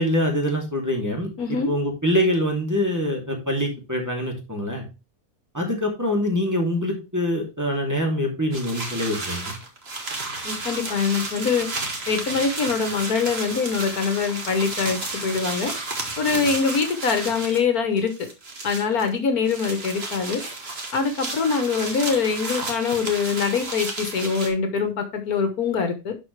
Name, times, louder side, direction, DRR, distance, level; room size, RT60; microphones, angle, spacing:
voice 1, 0.0-1.3 1.7-4.8 5.5-9.5, equal, 10° right, 2.7 m, -24 dB
voice 2, 1.4-1.7 10.4-11.7 12.1-15.7 16.2-18.1 18.6-20.4 20.9-26.1, left 5 dB, 70° left, 1.7 m, -24 dB
sound 1, 8.5-17.6 18.0-19.1 19.4-24.5, right 2 dB, 40° right, 2.0 m, -32 dB
11.5 x 5.0 x 3.2 m
omnidirectional pair, 1.6 m